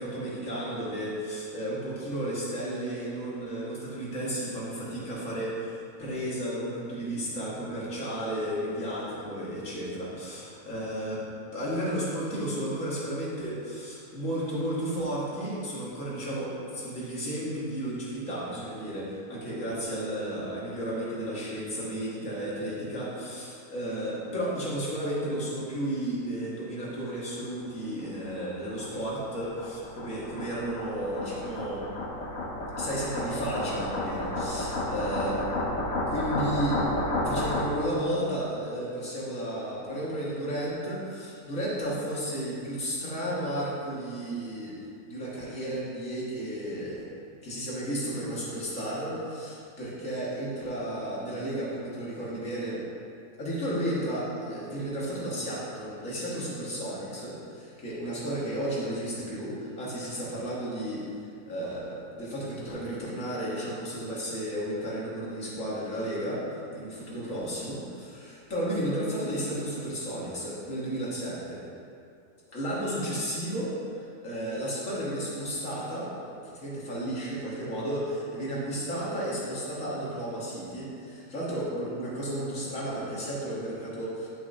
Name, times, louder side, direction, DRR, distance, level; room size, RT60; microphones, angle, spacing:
voice 1, 0.0-11.2 11.5-31.9 32.8-35.4 36.1-36.8 37.2-44.8 45.1-47.1 47.4-52.8 53.4-61.0 61.5-71.6 72.5-73.7 74.2-84.3, right 1 dB, 70° left, -7 dB, 2.1 m, -33 dB
sound 1, 28.0-38.0, left 1 dB, 85° left, 1.5 m, -32 dB
11.0 x 6.5 x 2.7 m, 2.5 s
omnidirectional pair, 1.4 m